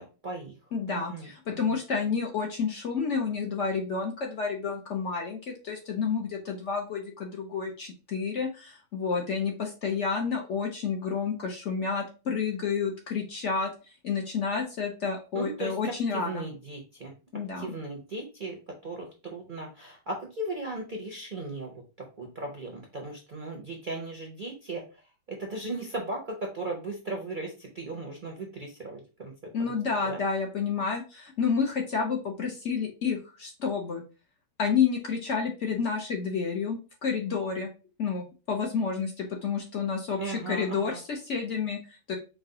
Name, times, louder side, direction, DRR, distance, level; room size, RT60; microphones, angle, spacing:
voice 1, 0.0-0.5 1.0-1.7 15.3-17.1 17.6-18.6 18.8-21.7 22.0-24.8 25.3-29.3 29.6-29.7 30.0-30.2 40.2-41.0, right 2 dB, 45° right, 0 dB, 0.6 m, -37 dB
voice 2, 0.7-13.7 14.0-16.4 17.3-17.7 29.5-34.0 34.6-37.7 38.0-42.2, left 5 dB, 55° left, 2 dB, 0.9 m, -30 dB
4.8 x 2.2 x 3.7 m, 0.33 s
omnidirectional pair, 1.8 m